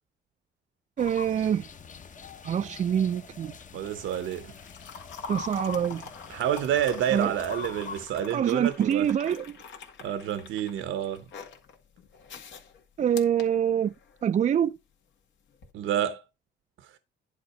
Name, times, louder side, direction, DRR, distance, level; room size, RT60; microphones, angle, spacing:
sound 1, 1.0-8.1, left 5 dB, 40° left, 1.0 m, -43 dB
voice 1, 1.0-1.7 2.4-3.5 5.3-6.1 7.1-7.3 8.3-9.6 13.0-13.9 14.2-14.8, right 9 dB, 40° right, 0.4 m, -25 dB
sound 2, 2.0-14.3 15.5-15.7, left 5 dB, 75° left, 1.9 m, -45 dB
voice 2, 3.7-4.5 6.3-9.1 10.0-11.2 15.7-16.2, right 10 dB, 80° right, 0.8 m, -28 dB
10.5 x 4.0 x 5.4 m
cardioid pair, 90°, 20 cm